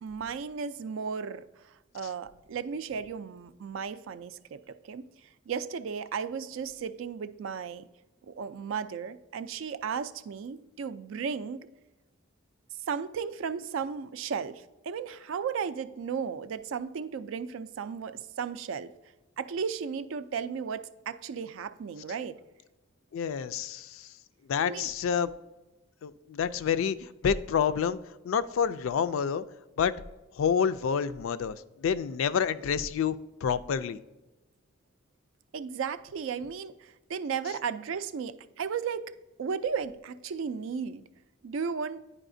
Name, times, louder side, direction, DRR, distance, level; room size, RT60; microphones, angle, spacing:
voice 1, 0.0-5.0 5.5-7.9 8.3-11.6 12.9-18.9 19.4-22.4 24.6-24.9 35.5-39.1 39.4-41.0 41.4-42.0, right 6 dB, 70° right, 14 dB, 0.3 m, -35 dB
voice 2, 23.1-24.1 24.5-25.3 26.0-28.0 28.2-29.4 29.8-29.9 30.3-33.2 33.4-34.0, left 7 dB, 75° left, 14 dB, 0.3 m, -28 dB
9.8 x 4.8 x 2.6 m, 1.1 s
head